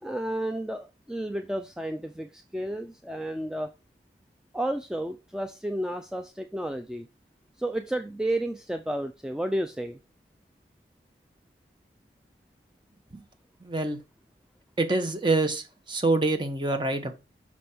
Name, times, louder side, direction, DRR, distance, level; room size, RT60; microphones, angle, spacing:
voice 1, 0.0-3.7 4.5-7.1 7.6-10.0, right 1 dB, 5° right, 0.4 m, -32 dB
voice 2, 13.6-14.0 14.8-17.1, right 2 dB, 25° right, 1.1 m, -26 dB
6.1 x 5.1 x 4.4 m
head